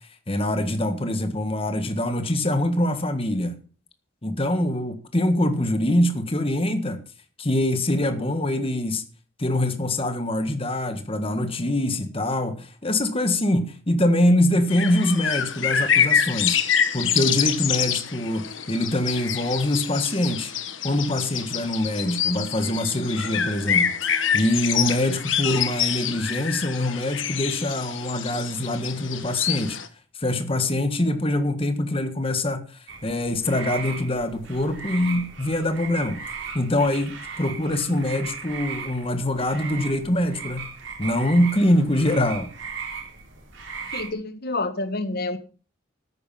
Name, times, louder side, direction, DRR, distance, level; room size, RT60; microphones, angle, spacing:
voice 1, 0.3-3.5 4.2-7.0 7.4-9.0 9.4-16.6 16.9-20.5 20.8-29.8 30.2-36.2 36.5-40.7 41.0-42.5, left 1 dB, 30° left, 1.6 m, -24 dB
sound 1, 14.7-29.9, left 8 dB, 70° left, 1.4 m, -26 dB
sound 2, 32.9-44.1, right 5 dB, 65° right, 4.2 m, -37 dB
voice 2, 43.9-45.4, left 2 dB, 50° left, 1.4 m, -28 dB
13.0 x 9.8 x 5.7 m
head